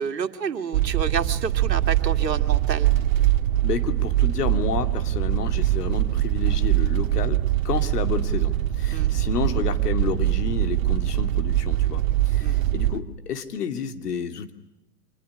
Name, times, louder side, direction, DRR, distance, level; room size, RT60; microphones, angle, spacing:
voice 1, 0.0-2.9 8.9-9.1 12.4-12.7, right 6 dB, 85° right, 6 dB, 2.5 m, -29 dB
sound 1, 0.7-13.0, right 13 dB, 55° right, 1.9 m, -23 dB
voice 2, 3.6-7.4 7.6-14.5, left 7 dB, 70° left, 8 dB, 2.8 m, -30 dB
25.5 x 21.0 x 9.9 m, 0.93 s
hypercardioid pair, 125°, 48 cm